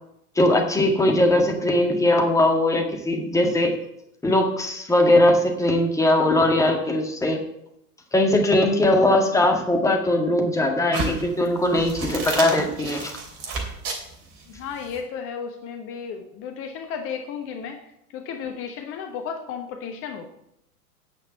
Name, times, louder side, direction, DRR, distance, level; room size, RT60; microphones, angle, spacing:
voice 1, 0.4-3.7 4.2-7.4 8.1-13.1, left 1 dB, 5° left, 2 dB, 1.8 m, -20 dB
sound 1, 10.9-15.0, right 3 dB, 30° right, 3.0 m, -31 dB
voice 2, 14.5-17.8 18.1-20.3, left 6 dB, 30° left, 5 dB, 1.1 m, -33 dB
9.3 x 6.5 x 7.8 m, 0.78 s
figure-of-eight pair, 100°, 47 cm